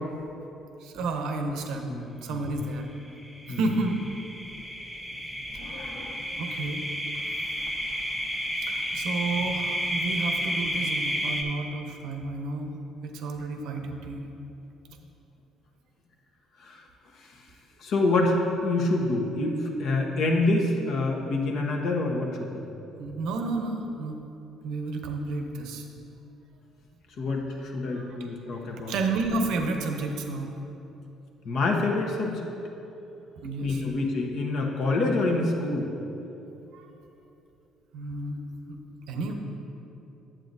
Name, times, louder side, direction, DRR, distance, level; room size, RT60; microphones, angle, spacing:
voice 1, 0.8-2.9 3.5-4.0 6.4-6.9 8.7-14.2 23.0-24.2 24.6-25.8 27.9-28.2 28.5-30.5 33.4-33.8 36.7-36.9 37.9-38.4 38.7-38.8 39.1-39.3, right 3 dB, 80° right, 4 dB, 0.7 m, -31 dB
voice 2, 1.9-2.5 3.5-3.6 5.6-6.3 16.6-16.8 17.2-17.3 17.8-22.5 27.2-28.9 31.4-32.4 33.6-35.9, left 2 dB, 65° left, 0 dB, 1.0 m, -27 dB
sound 1, 3.1-11.4, equal, ahead, 1.1 m, -31 dB
8.9 x 7.5 x 2.7 m, 2.9 s
supercardioid pair, 80°, 0 cm